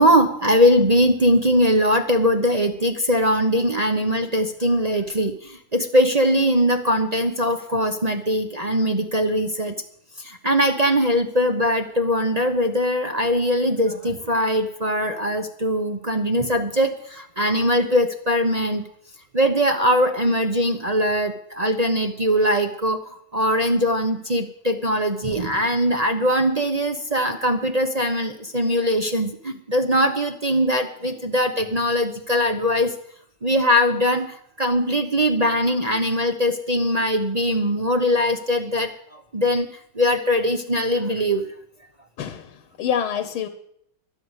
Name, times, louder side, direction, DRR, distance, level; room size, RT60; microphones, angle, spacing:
voice 1, 0.0-9.8 10.2-18.8 19.3-32.9 33.4-39.7 39.9-41.5, equal, 35° right, 4 dB, 0.6 m, -21 dB
voice 2, 42.2-43.5, left 8 dB, 90° left, 10 dB, 1.9 m, -27 dB
13.5 x 11.0 x 8.1 m, 0.69 s
omnidirectional pair, 2.2 m